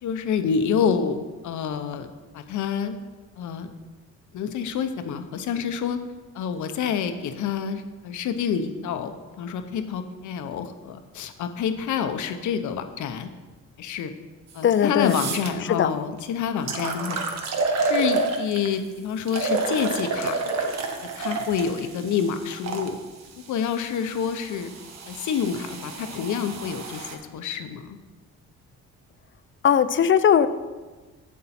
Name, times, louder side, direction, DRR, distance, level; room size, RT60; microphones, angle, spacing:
voice 1, 0.0-2.1 2.3-3.0 3.4-3.7 4.3-6.0 6.3-13.3 13.8-14.1 14.5-17.2 17.8-20.5 21.0-23.0 23.5-24.7 25.1-28.0, left 7 dB, 75° left, 8 dB, 0.9 m, -28 dB
sound 1, 14.5-14.6 15.0-15.5 16.2-16.3 16.7-18.8 19.3-22.9 23.7-27.2, right 3 dB, 60° right, 1.2 m, -29 dB
voice 2, 14.6-15.2 15.7-15.9 29.6-30.5, left 8 dB, 40° left, 14 dB, 0.5 m, -19 dB
8.2 x 7.6 x 4.3 m, 1.3 s
cardioid pair, 90°, 30 cm